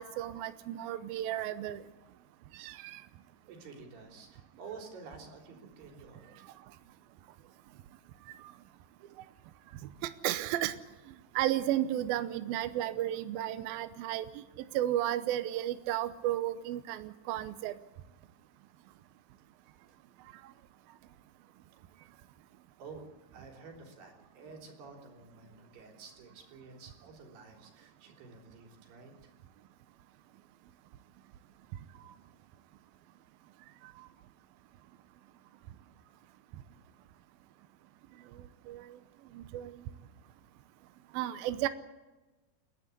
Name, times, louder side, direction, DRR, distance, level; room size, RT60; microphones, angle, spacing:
voice 1, 0.0-1.8 2.5-3.0 8.4-8.5 10.0-10.8 11.4-17.7 38.7-39.0 39.3-39.8 41.1-41.7, right 13 dB, 80° right, 11 dB, 2.2 m, -33 dB
voice 2, 3.5-6.5 19.9-20.0 22.8-29.3, right 4 dB, 65° right, 2 dB, 5.4 m, -50 dB
29.0 x 12.0 x 8.4 m, 1.2 s
omnidirectional pair, 5.2 m